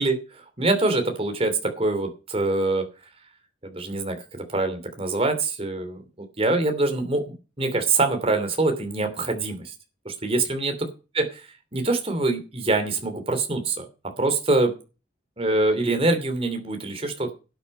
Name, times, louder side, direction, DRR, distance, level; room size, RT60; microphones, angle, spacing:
voice 1, 0.0-2.9 3.6-4.2 4.5-9.7 10.0-10.9 11.1-11.4 11.7-13.9 14.2-14.7 15.4-17.3, right 2 dB, 30° right, 6 dB, 2.9 m, -24 dB
12.0 x 9.0 x 5.5 m, 0.32 s
head